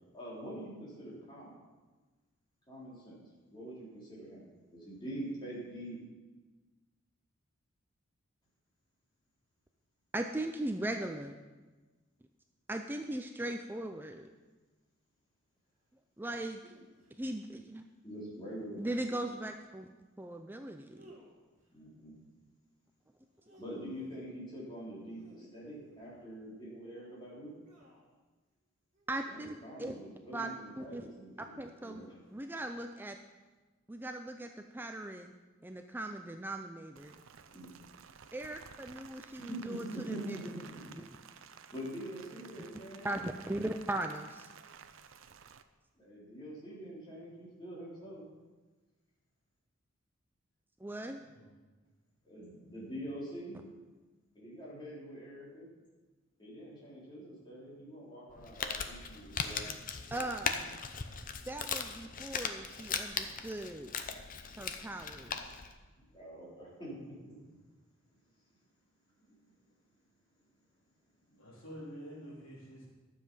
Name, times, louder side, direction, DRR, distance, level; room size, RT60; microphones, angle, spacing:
voice 1, 0.1-1.6 2.7-3.2 3.5-6.0 18.0-18.9 21.7-22.1 23.6-27.5 29.3-32.2 37.5-37.7 39.4-40.9 41.7-43.2 45.9-48.2 52.2-53.7 54.3-55.7 56.4-59.7 66.1-67.4 69.3-69.5 71.3-71.5, right 1 dB, 25° left, -7 dB, 4.0 m, -45 dB
voice 2, 10.1-11.4 12.7-14.3 16.2-16.6 17.2-17.9 18.8-19.9 20.2-21.1 29.1-29.9 30.3-31.1 31.4-32.0 32.3-33.2 33.9-35.3 35.6-37.2 38.3-40.4 43.0-44.5 50.8-51.2 60.1-60.7 61.5-63.9 64.6-65.5, right 1 dB, 10° right, 5 dB, 0.4 m, -39 dB
sound 1, 16.6-17.1 19.0-19.6 20.9-21.7 23.2-24.3 25.1-26.3 27.7-28.2 28.9-29.2 30.5-31.1 32.2-32.6, equal, 35° right, 2.1 m, -60 dB
Rain, 37.0-45.6, right 7 dB, 75° right, 0.6 m, -54 dB
voice 3, 51.0-51.5 71.4-72.9, equal, 70° left, -5 dB, 3.8 m, -48 dB
Crumpling crinkling, 58.3-65.7, left 6 dB, 40° left, 0.7 m, -39 dB
12.0 x 7.5 x 5.5 m, 1.2 s
head